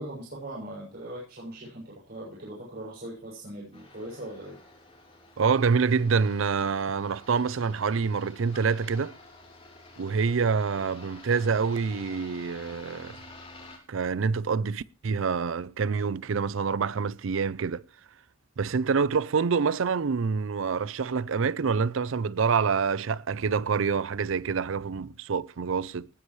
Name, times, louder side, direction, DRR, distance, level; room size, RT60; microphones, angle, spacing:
voice 1, 0.0-4.6, right 1 dB, 50° right, 7.2 m, -40 dB
sound 1, 3.7-13.8, left 2 dB, 30° left, 3.9 m, -50 dB
voice 2, 5.4-9.2 10.0-13.2 13.9-17.8 18.6-26.1, right 5 dB, 70° right, 0.5 m, -26 dB
20.0 x 10.0 x 3.2 m
head